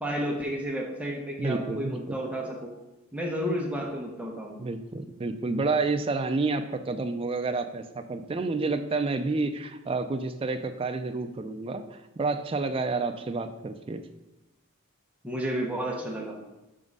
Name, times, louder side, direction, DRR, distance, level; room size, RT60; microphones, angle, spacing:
voice 1, 0.0-2.7 3.1-4.6 15.2-16.4, equal, 5° right, -2 dB, 0.9 m, -31 dB
voice 2, 1.4-2.0 4.6-14.0, right 3 dB, 25° right, 8 dB, 0.4 m, -29 dB
6.1 x 3.7 x 5.3 m, 1.0 s
head